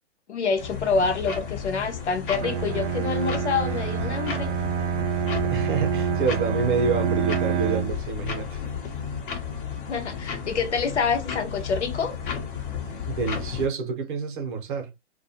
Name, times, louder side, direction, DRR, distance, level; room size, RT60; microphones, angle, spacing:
voice 1, 0.3-4.5 9.9-12.2, left 5 dB, 70° left, 0.9 m, -27 dB
sound 1, 0.6-13.7, left 6 dB, 45° left, 0.9 m, -33 dB
Bowed string instrument, 2.4-8.1, right 9 dB, 90° right, 0.5 m, -27 dB
voice 2, 5.5-8.6 13.1-14.9, right 4 dB, 45° right, 0.9 m, -27 dB
2.4 x 2.4 x 2.8 m
hypercardioid pair, 130°, 36 cm